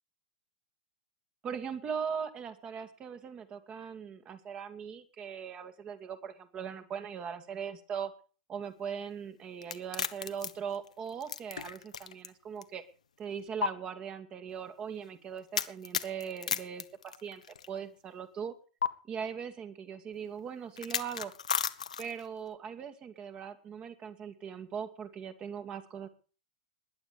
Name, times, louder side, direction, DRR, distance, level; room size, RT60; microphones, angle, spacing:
voice 1, 1.4-8.1 8.5-12.8 13.2-17.4 17.7-18.5 19.1-21.3 22.0-26.1, right 7 dB, 25° right, 9 dB, 2.2 m, -40 dB
sound 1, 9.6-12.3 12.6-12.7 13.6-13.7 15.5-17.7 18.8-18.9 20.8-22.3, left 7 dB, 70° left, 1.2 m, -34 dB
19.5 x 11.0 x 5.0 m, 0.37 s
figure-of-eight pair, 95°, 4 cm